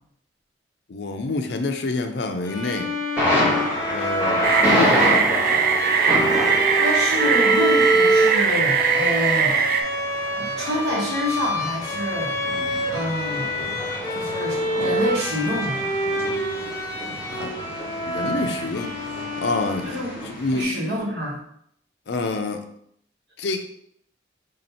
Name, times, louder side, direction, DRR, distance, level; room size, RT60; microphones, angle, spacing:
voice 1, 0.9-2.9 3.9-5.2 17.3-17.5 18.1-19.0 19.4-20.0 20.3-20.7 22.1-22.6 23.4-23.6, left 3 dB, 70° left, 6 dB, 0.5 m, -27 dB
Bowed string instrument, 2.4-20.3, right 1 dB, 20° left, 0.6 m, -26 dB
Thunder, 3.2-20.6, left 1 dB, 10° right, 1.3 m, -28 dB
sound 1, 4.4-9.8, right 7 dB, 50° right, 0.3 m, -21 dB
voice 2, 6.7-9.5 10.4-12.3 12.9-13.5 14.1-15.8 19.8-20.1 20.5-21.4, equal, 65° right, -6 dB, 1.6 m, -27 dB
3.4 x 2.8 x 4.2 m, 0.70 s
head